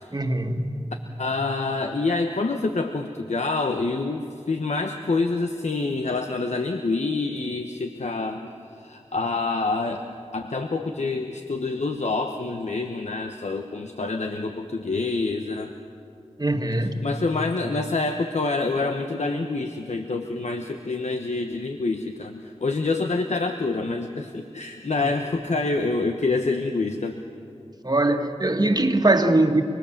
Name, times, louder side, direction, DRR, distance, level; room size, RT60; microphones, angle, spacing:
voice 1, 0.1-0.8 16.4-17.1 25.0-25.1 27.8-29.6, right 2 dB, 35° right, 5 dB, 1.8 m, -22 dB
voice 2, 1.2-8.5 8.8-10.1 10.3-15.7 16.8-27.2, left 3 dB, 75° left, 5 dB, 1.1 m, -27 dB
29.5 x 20.5 x 7.3 m, 2.4 s
wide cardioid pair, 50°, 12 cm